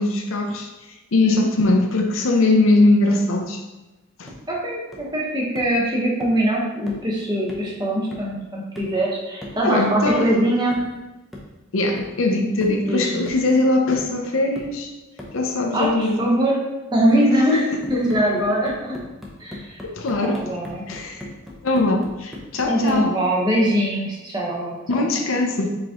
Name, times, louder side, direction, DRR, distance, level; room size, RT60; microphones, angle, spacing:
voice 1, 0.0-3.6 4.2-4.3 9.6-10.3 11.7-14.9 15.3-16.2 19.8-20.6 20.9-21.3 21.6-23.1 24.9-25.7, left 2 dB, 85° left, 2 dB, 0.6 m, -21 dB
sound 1, 4.3-4.5 4.9-5.2 5.5-5.8 6.2-6.4 6.9-7.1 7.5-7.7 8.1-8.4 8.7-9.0 9.4-9.7 10.1-10.3 10.7-11.0 11.3-11.6 12.0-12.2 12.6-12.9 13.3-13.6 13.9-14.2 14.5-14.8 15.2-15.4 15.8-16.1 17.8-23.1, left 1 dB, ahead, 0.7 m, -39 dB
voice 2, 4.5-10.8 12.9-13.3 15.7-16.6 16.9-18.9 19.4-19.8 20.2-20.8 21.3-21.4 22.7-24.8, right 1 dB, 20° right, -4 dB, 1.1 m, -22 dB
4.8 x 3.7 x 3.0 m, 1.1 s
head